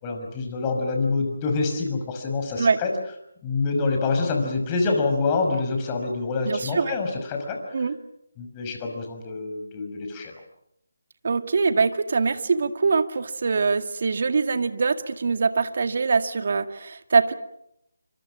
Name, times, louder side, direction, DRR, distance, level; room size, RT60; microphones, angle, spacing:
voice 1, 0.0-2.9 3.4-7.7 8.4-10.3, left 3 dB, 20° left, 3 dB, 5.8 m, -26 dB
voice 2, 6.4-6.9 7.7-8.0 11.2-17.3, right 4 dB, 50° right, 9 dB, 2.1 m, -23 dB
28.0 x 25.5 x 6.3 m, 0.77 s
figure-of-eight pair, 155°, 0 cm